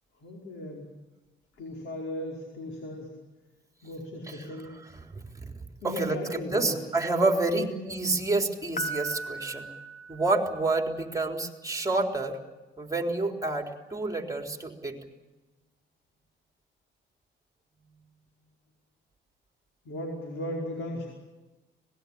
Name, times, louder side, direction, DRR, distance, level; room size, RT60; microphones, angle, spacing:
voice 1, 0.2-0.9 1.6-3.1 3.8-4.7 5.8-6.8 7.5-7.7 19.8-21.1, left 1 dB, 80° left, -1 dB, 5.1 m, -36 dB
voice 2, 5.8-9.7 10.1-12.4 12.8-15.0, right 2 dB, 15° right, 3 dB, 3.9 m, -28 dB
Piano, 8.8-10.9, right 2 dB, 45° left, 3.2 m, -37 dB
25.5 x 20.0 x 8.7 m, 1.1 s
cardioid pair, 90°, 20 cm